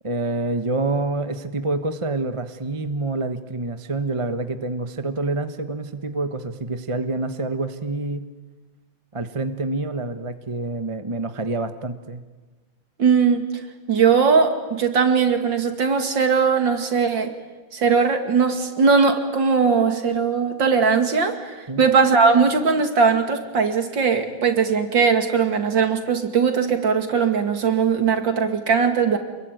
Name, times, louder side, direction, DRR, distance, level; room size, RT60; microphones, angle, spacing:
voice 1, 0.0-8.2 9.1-12.2 21.7-21.8, right 2 dB, 20° right, 9 dB, 0.9 m, -27 dB
voice 2, 13.0-13.4 13.9-17.3 17.7-29.2, right 5 dB, 60° right, 7 dB, 2.9 m, -19 dB
28.5 x 22.0 x 9.3 m, 1.3 s
omnidirectional pair, 2.3 m